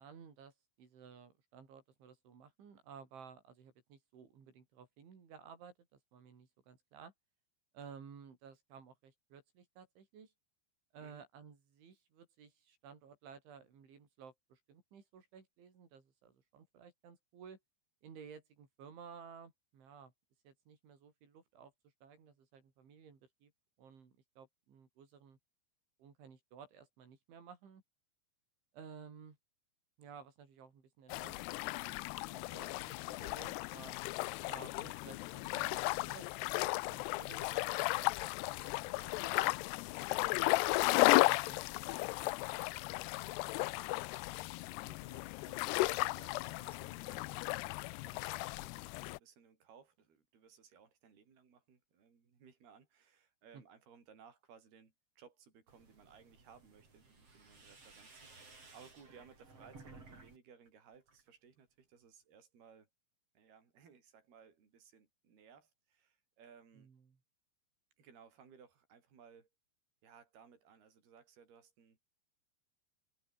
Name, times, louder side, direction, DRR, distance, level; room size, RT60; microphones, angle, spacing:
voice 1, 0.0-7.1 7.7-10.3 10.9-17.6 18.0-20.1 20.5-21.7 22.0-23.5 23.8-25.4 26.0-27.8 28.7-29.4 30.0-31.6 31.9-34.0 34.5-38.1 38.4-39.5 40.6-43.3 43.6-43.8 53.5-53.6 66.8-67.2, right 6 dB, 85° right, 7.4 m, -56 dB
sound 1, 31.1-49.2, left 21 dB, 85° left, 2.4 m, -35 dB
voice 2, 44.8-62.9 63.4-66.9 68.0-69.5 70.0-72.0, right 6 dB, 60° right, 7.1 m, -62 dB
sound 2, 55.7-60.4 60.7-61.3, right 3 dB, 30° right, 7.2 m, -58 dB
omnidirectional pair, 5.2 m